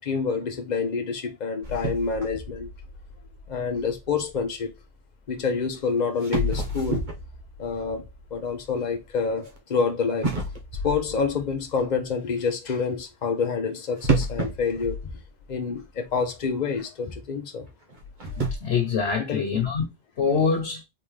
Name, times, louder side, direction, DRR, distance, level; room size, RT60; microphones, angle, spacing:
voice 1, 0.0-2.7 3.5-4.7 5.3-7.1 7.6-10.4 10.8-15.1 15.5-17.7 19.2-19.6, left 5 dB, 45° left, 1.0 m, -28 dB
sound 1, 1.6-4.8 5.7-5.8 6.2-9.6 10.2-12.1 14.0-15.8 16.1-16.2 16.8-16.9 17.9-18.6, right 2 dB, 50° right, 1.3 m, -31 dB
voice 2, 18.2-19.8 20.2-20.8, left 6 dB, 85° left, 1.3 m, -25 dB
3.9 x 3.7 x 3.3 m
omnidirectional pair, 1.0 m